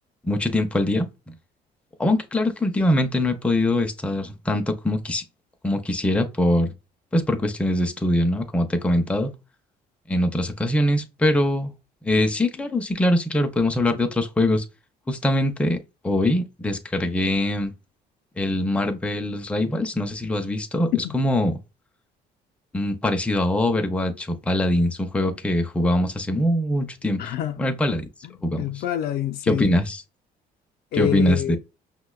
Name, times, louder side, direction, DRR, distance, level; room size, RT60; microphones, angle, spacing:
voice 1, 0.2-1.3 2.0-5.2 5.6-6.7 7.1-9.3 10.1-11.7 12.0-14.6 15.1-17.7 18.4-21.5 22.7-27.2 27.6-28.1 28.4-28.6 29.5-30.0 31.0-31.6, left 1 dB, 5° left, 0.4 m, -23 dB
voice 2, 27.2-27.6 28.2-29.7 30.9-31.6, left 12 dB, 65° left, 0.4 m, -27 dB
5.5 x 2.1 x 2.3 m
cardioid pair, 110°, 17 cm